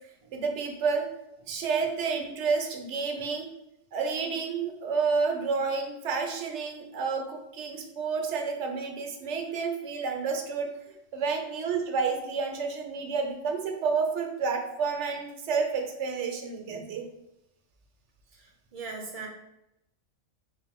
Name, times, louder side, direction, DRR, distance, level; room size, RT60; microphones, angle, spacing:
voice 1, 0.3-1.1 1.5-3.5 3.9-10.7 11.1-17.1, right 5 dB, 65° right, 3 dB, 0.9 m, -30 dB
voice 2, 18.3-19.3, right 4 dB, 40° right, 0 dB, 0.6 m, -41 dB
4.2 x 2.5 x 3.6 m, 0.86 s
omnidirectional pair, 1.4 m